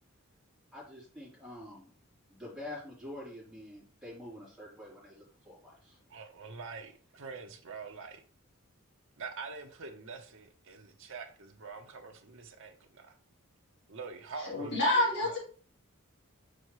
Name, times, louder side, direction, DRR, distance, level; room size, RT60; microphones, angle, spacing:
voice 1, 0.7-1.9 2.3-6.0, left 1 dB, ahead, -8 dB, 3.5 m, -46 dB
voice 2, 6.1-8.2 9.2-13.2 13.9-14.8 15.2-15.4, right 4 dB, 60° right, 3 dB, 0.8 m, -45 dB
voice 3, 14.4-15.4, left 1 dB, 55° left, -4 dB, 2.8 m, -28 dB
6.4 x 5.4 x 3.1 m, 0.41 s
head